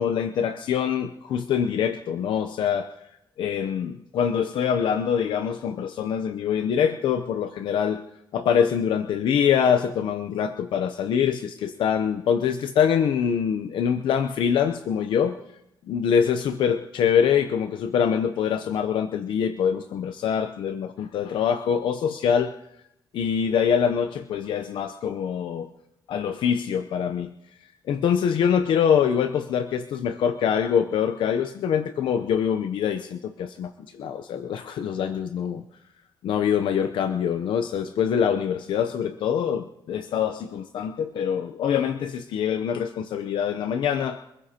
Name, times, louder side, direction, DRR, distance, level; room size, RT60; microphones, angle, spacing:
voice 1, 0.0-2.9 3.4-8.0 8.3-15.4 15.9-22.5 23.1-25.7 26.1-27.3 27.9-35.6 36.2-44.2, left 8 dB, 85° left, 9 dB, 0.7 m, -24 dB
28.0 x 15.5 x 2.9 m, 0.84 s
cardioid pair, 100°, 8 cm